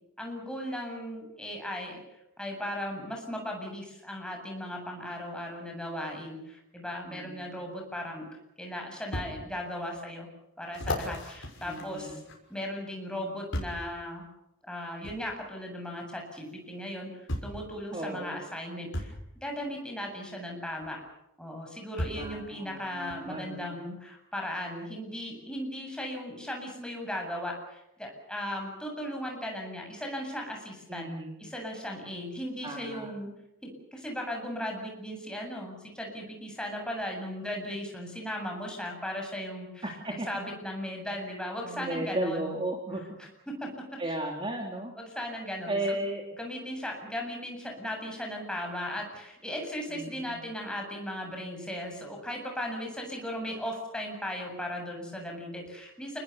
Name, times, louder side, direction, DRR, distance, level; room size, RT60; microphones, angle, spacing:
voice 1, 0.2-2.0 2.4-8.3 8.6-10.3 10.6-12.2 12.5-14.3 14.7-19.1 19.4-21.0 21.4-31.1 31.4-33.3 33.6-42.5 43.2-43.8 44.9-46.0 46.4-56.2, equal, 5° left, 1 dB, 7.8 m, -37 dB
voice 2, 7.1-7.5 11.6-12.2 17.9-18.5 22.2-23.8 30.9-31.4 32.6-33.1 39.8-40.3 41.6-43.0 44.0-44.9 45.7-46.2 49.9-50.4, right 1 dB, 25° right, 1 dB, 2.9 m, -35 dB
sound 1, 8.0-8.1 9.1-9.3 9.9-10.0 10.7-12.6 13.5-13.9 15.0-15.2 16.5-16.6 17.3-17.6 18.9-19.2 20.8-20.9 22.0-22.3 23.1-23.2, left 1 dB, 55° left, 6.4 m, -35 dB
30.0 x 20.5 x 6.9 m, 0.85 s
head